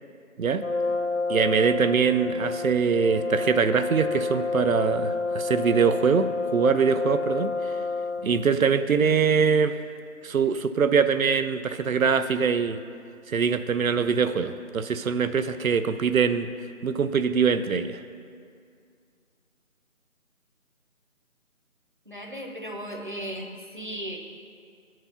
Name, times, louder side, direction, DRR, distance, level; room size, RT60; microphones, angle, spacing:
Brass instrument, 0.6-8.4, left 3 dB, 60° left, 0.6 m, -29 dB
voice 1, 1.3-7.8 8.2-9.8 10.2-12.8 13.3-16.5 16.8-18.0, right 6 dB, 75° right, 11 dB, 0.5 m, -23 dB
voice 2, 22.1-24.2, equal, 35° right, 1 dB, 0.7 m, -36 dB
8.7 x 4.7 x 5.6 m, 2.3 s
figure-of-eight pair, 175°, 42 cm